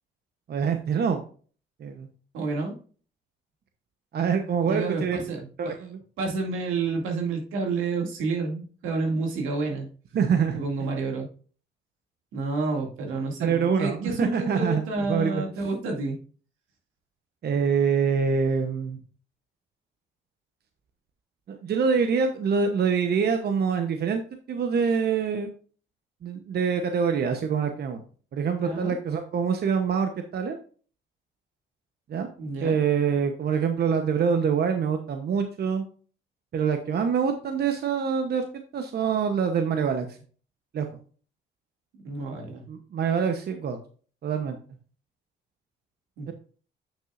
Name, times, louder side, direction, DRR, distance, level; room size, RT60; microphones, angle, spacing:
voice 1, 0.5-1.2 1.8-2.1 4.1-5.2 5.6-6.0 10.1-10.6 13.4-14.8 15.1-15.4 17.4-19.0 21.5-24.2 24.5-25.5 26.2-28.0 28.3-30.6 32.1-32.3 32.6-35.8 36.5-38.5 38.7-40.1 40.7-40.9 42.7-43.8 44.2-44.6 46.3-46.4, right 6 dB, 55° right, 6 dB, 0.9 m, -25 dB
voice 2, 2.3-2.7 4.6-5.7 6.2-9.9 10.5-11.3 12.3-16.2 28.6-28.9 32.4-32.8 42.0-42.6 46.2-46.3, right 3 dB, 90° right, 1 dB, 2.3 m, -29 dB
8.5 x 6.1 x 2.5 m, 0.41 s
cardioid pair, 90°, 20 cm